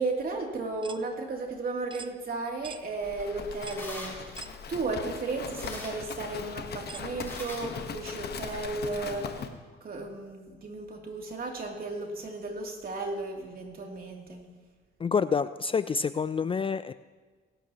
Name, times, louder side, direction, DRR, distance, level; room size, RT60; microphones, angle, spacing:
voice 1, 0.0-9.3 9.8-14.4, right 3 dB, 50° right, 0 dB, 2.8 m, -34 dB
sound 1, 0.8-1.0 1.9-2.1 2.6-2.8 3.6-3.9 4.4-4.6 5.4-5.5 6.9-7.1, right 5 dB, 25° right, 0.5 m, -44 dB
sound 2, 2.6-8.7, left 1 dB, 10° left, 4.2 m, -47 dB
Livestock farm animals working animals, 3.0-9.5, left 6 dB, 55° left, 1.2 m, -40 dB
voice 2, 15.0-16.9, left 5 dB, 25° left, 14 dB, 0.4 m, -27 dB
22.0 x 12.0 x 3.0 m, 1.4 s
cardioid pair, 90°, 20 cm